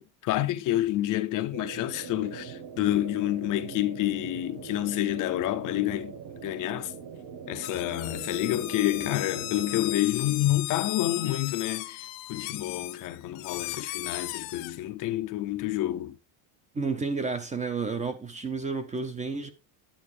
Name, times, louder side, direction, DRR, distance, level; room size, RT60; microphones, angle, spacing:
voice 1, 0.0-6.1 6.4-6.9 7.5-16.2, left 14 dB, 45° left, 0.6 m, -28 dB
sound 1, 1.5-10.0, right 6 dB, 45° right, 1.5 m, -42 dB
sound 2, 7.6-14.7, left 17 dB, 80° left, 1.2 m, -36 dB
voice 2, 16.7-19.5, right 4 dB, 15° right, 0.6 m, -31 dB
9.5 x 8.8 x 3.2 m
cardioid pair, 155°, 46 cm